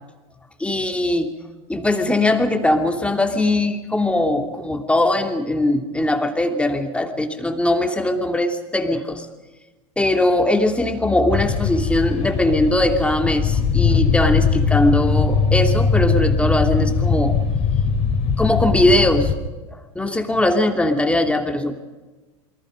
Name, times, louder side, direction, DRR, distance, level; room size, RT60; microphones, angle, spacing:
voice 1, 0.6-1.3 1.7-9.2 10.0-17.4 18.4-19.3 19.7-21.7, left 1 dB, 5° left, 4 dB, 3.1 m, -20 dB
sound 1, 11.3-19.3, left 5 dB, 40° left, 3.5 m, -20 dB
28.0 x 24.0 x 5.4 m, 1.2 s
hypercardioid pair, 90°, 17 cm